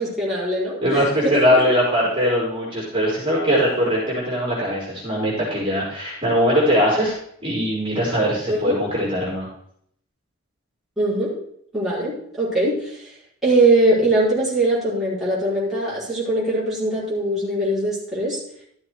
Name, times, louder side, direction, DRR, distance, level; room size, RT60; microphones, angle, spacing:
voice 1, 0.0-1.4 8.5-8.8 11.0-11.3 11.7-13.1 13.4-18.4, right 1 dB, ahead, -9 dB, 5.1 m, -21 dB
voice 2, 0.8-7.1 7.4-9.5, equal, 25° right, -5 dB, 4.9 m, -21 dB
13.5 x 7.6 x 4.8 m, 0.67 s
head